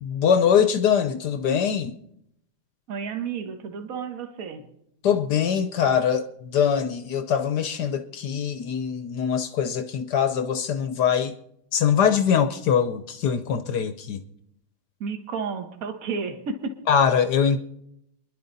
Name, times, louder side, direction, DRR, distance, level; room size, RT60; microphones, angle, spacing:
voice 1, 0.0-2.0 5.0-11.3 11.7-14.2 16.9-17.6, left 7 dB, 60° left, 1.2 m, -23 dB
voice 2, 2.9-4.6 15.0-16.8, right 5 dB, 45° right, 1.7 m, -32 dB
28.5 x 11.0 x 4.1 m
omnidirectional pair, 2.3 m